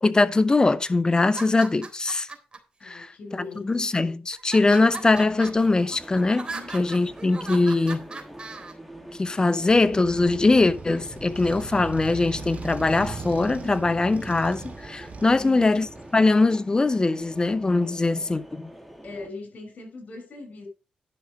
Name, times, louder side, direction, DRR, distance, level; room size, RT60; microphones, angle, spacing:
voice 1, 0.0-2.3 2.8-8.1 9.2-15.9 16.1-18.7, left 3 dB, 30° left, 0.9 m, -22 dB
sound 1, 1.2-2.6 3.3-3.8 4.3-8.7, right 3 dB, 35° right, 3.7 m, -39 dB
voice 2, 2.8-3.9 6.5-6.8 7.6-7.8 15.3-15.8 19.0-20.7, left 3 dB, 65° left, 5.7 m, -40 dB
sound 2, 4.9-19.3, equal, ahead, 2.7 m, -45 dB
Motorcycle, 9.6-16.3, right 4 dB, 55° right, 2.9 m, -39 dB
11.0 x 6.4 x 5.1 m
cardioid pair, 60°, 3 cm